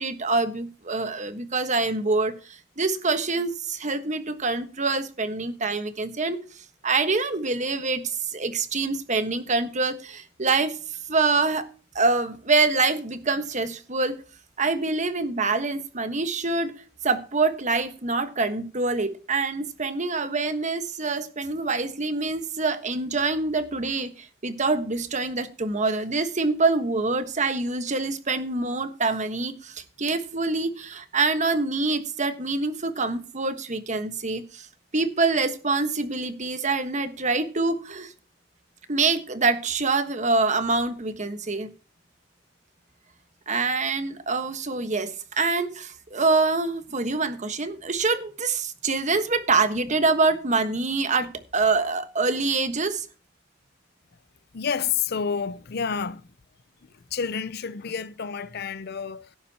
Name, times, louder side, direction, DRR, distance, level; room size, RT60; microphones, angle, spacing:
voice 1, 0.0-6.4 6.8-8.0 8.3-10.8 11.1-11.6 11.9-14.2 14.6-16.7 17.0-34.7 34.9-38.1 38.9-41.7 43.5-53.1, right 3 dB, 40° right, 1.3 m, -25 dB
voice 2, 54.5-56.3 56.8-59.4, left 6 dB, 55° left, 0.6 m, -29 dB
17.0 x 9.4 x 2.9 m
head